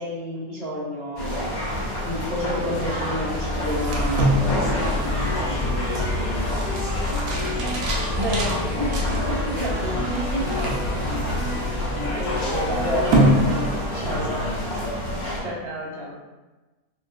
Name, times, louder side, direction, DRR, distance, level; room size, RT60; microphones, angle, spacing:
voice 1, 0.0-1.5 2.0-4.2 8.2-11.0 11.9-14.3 15.4-16.2, equal, 55° right, -10 dB, 1.4 m, -30 dB
sound 1, 1.2-15.4, left 1 dB, 85° left, 1.4 m, -28 dB
sound 2, 3.6-14.1, right 1 dB, 80° right, 1.1 m, -26 dB
voice 2, 4.6-8.0 10.5-11.1 11.9-12.8 14.0-15.0, equal, 65° left, -8 dB, 1.3 m, -35 dB
sound 3, 5.2-14.1, left 1 dB, 45° left, 0.6 m, -34 dB
4.2 x 2.1 x 2.3 m, 1.2 s
omnidirectional pair, 1.5 m